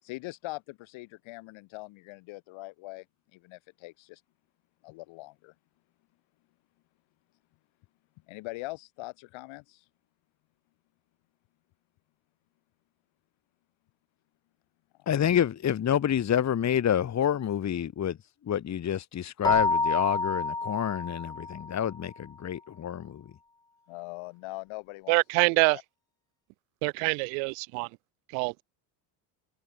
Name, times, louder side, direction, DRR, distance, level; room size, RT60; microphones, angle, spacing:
voice 1, 0.0-3.1 3.3-4.2 4.8-5.5 8.3-9.8 15.0-15.3 23.9-25.2 25.5-25.8, left 22 dB, 70° left, 7.6 m, -42 dB
voice 2, 15.1-18.2 18.4-23.3, left 9 dB, 35° left, 1.8 m, -28 dB
Keyboard (musical), 19.4-21.9, left 3 dB, 10° left, 0.7 m, -28 dB
voice 3, 25.1-25.8 26.8-27.9 28.3-28.5, right 40 dB or more, 75° right, 0.8 m, -25 dB
supercardioid pair, 105°, 49 cm